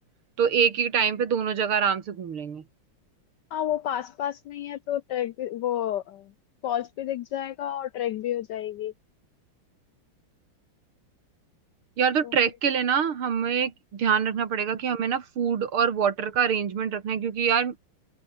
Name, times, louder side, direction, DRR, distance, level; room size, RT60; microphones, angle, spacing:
voice 1, 0.4-2.6 12.0-17.8, right 7 dB, 75° right, 2.9 m, -25 dB
voice 2, 3.5-6.3 6.6-8.9 12.2-12.3, left 11 dB, 75° left, 1.0 m, -30 dB
open air
omnidirectional pair, 2.4 m